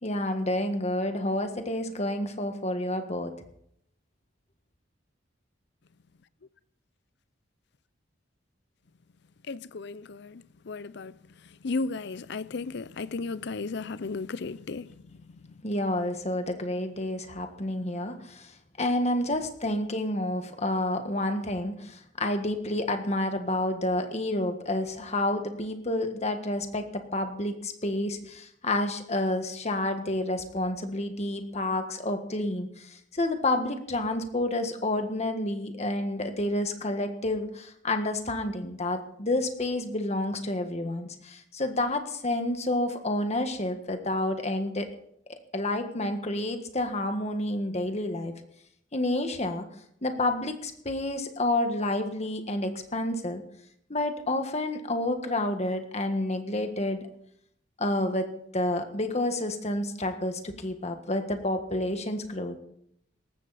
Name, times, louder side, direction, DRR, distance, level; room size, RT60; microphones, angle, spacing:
voice 1, 0.0-3.3 15.6-18.5 18.8-26.8 27.1-32.7 33.1-44.9 45.5-48.3 48.9-49.6 50.0-53.4 53.9-57.0 57.8-58.3 58.5-62.5, left 1 dB, 35° left, 1.6 m, -29 dB
voice 2, 9.5-11.1 11.6-14.9, left 3 dB, 65° left, 0.6 m, -34 dB
18.0 x 14.5 x 4.2 m
head